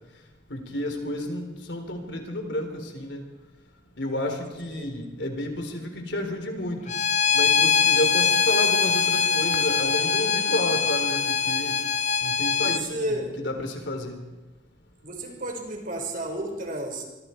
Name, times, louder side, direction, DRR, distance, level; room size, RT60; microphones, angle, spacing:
voice 1, 0.5-3.2 4.0-6.9 7.3-11.2 11.4-11.7 12.2-14.2, left 1 dB, 70° left, 5 dB, 3.8 m, -31 dB
voice 2, 4.7-5.0 12.6-13.3 15.0-17.0, right 1 dB, 50° right, 3 dB, 4.9 m, -32 dB
Bowed string instrument, 6.9-12.8, left 6 dB, 40° left, 0.8 m, -23 dB
sound 1, 7.6-12.9, left 1 dB, 90° left, 5.3 m, -46 dB
25.0 x 24.5 x 4.6 m, 1.1 s
head